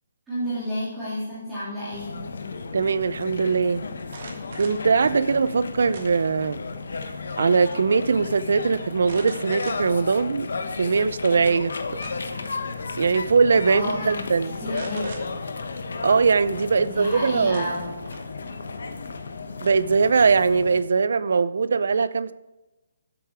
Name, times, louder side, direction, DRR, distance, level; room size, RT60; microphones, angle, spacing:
voice 1, 0.3-2.2 13.6-15.3 16.8-17.9, equal, 5° right, 2.5 m, -31 dB
sound 1, 1.9-20.8, left 4 dB, 65° left, 1.0 m, -34 dB
voice 2, 2.7-3.9 4.6-6.6 7.4-10.5 10.8-11.7 13.0-14.5 16.0-17.7 19.6-22.3, right 5 dB, 55° right, 0.5 m, -21 dB
sound 2, 4.0-4.8 5.9-6.5 6.9-7.5 7.7-7.8 9.0-10.0 10.6-10.7 11.7-12.4 13.4-13.6 13.9-14.1 14.7-15.2 17.0-17.1 17.5-18.4, right 3 dB, 35° right, 1.7 m, -42 dB
13.0 x 7.9 x 4.8 m
hypercardioid pair, 180°, 0 cm